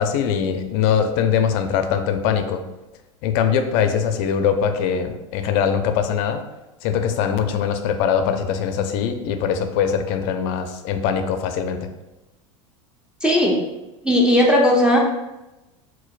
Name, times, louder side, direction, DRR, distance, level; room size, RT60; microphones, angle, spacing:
voice 1, 0.0-2.6 3.2-6.4 6.8-11.9, left 7 dB, 60° left, 8 dB, 0.4 m, -22 dB
voice 2, 13.2-13.6 14.0-15.0, left 1 dB, 5° right, -2 dB, 0.5 m, -16 dB
4.4 x 2.1 x 2.4 m, 1.0 s
hypercardioid pair, 90°, 17 cm